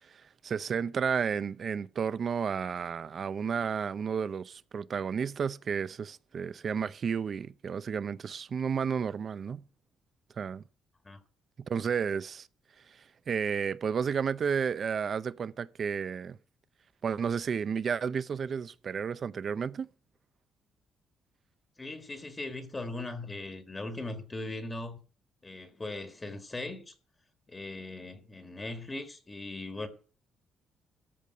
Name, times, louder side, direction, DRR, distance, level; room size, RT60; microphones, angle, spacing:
voice 1, 0.1-9.6 10.4-10.6 11.6-12.5 13.3-16.4 17.0-19.9, right 6 dB, 45° right, 0.6 m, -32 dB
voice 2, 21.8-25.0 25.4-26.9 27.5-29.9, left 2 dB, 20° left, 1.6 m, -39 dB
13.5 x 5.3 x 7.7 m
cardioid pair, 110°, 0 cm